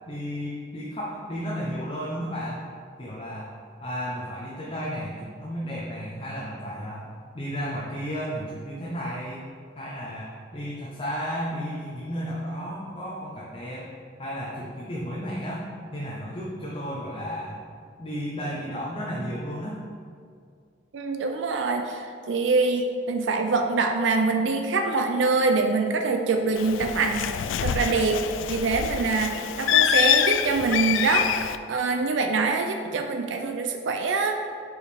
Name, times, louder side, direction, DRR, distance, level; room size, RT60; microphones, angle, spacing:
voice 1, 0.1-2.6 3.0-3.5 3.8-9.5 9.8-13.9 14.2-15.7 15.9-17.6 18.0-19.8, equal, 25° left, -5 dB, 0.7 m, -33 dB
voice 2, 20.9-34.3, right 3 dB, 75° right, 5 dB, 0.4 m, -25 dB
Bird, 26.6-31.6, left 9 dB, 85° left, 0.3 m, -25 dB
5.1 x 4.8 x 5.0 m, 2.3 s
head